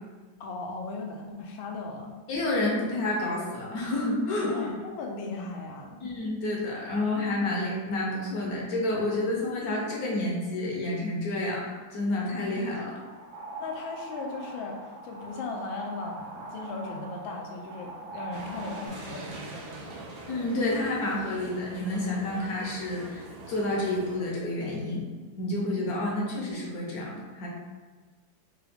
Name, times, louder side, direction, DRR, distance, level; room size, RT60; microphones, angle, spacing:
voice 1, 0.4-2.2 4.5-6.0 13.6-20.1, left 3 dB, 85° left, 1 dB, 1.3 m, -37 dB
voice 2, 2.3-4.7 6.0-13.0 20.3-25.1 25.3-27.5, left 2 dB, 60° left, -3 dB, 1.0 m, -29 dB
sound 1, 13.0-18.9, right 2 dB, 70° right, 1.0 m, -42 dB
sound 2, 18.3-24.2, right 3 dB, 90° right, 1.4 m, -43 dB
3.8 x 2.3 x 3.4 m, 1.4 s
omnidirectional pair, 2.1 m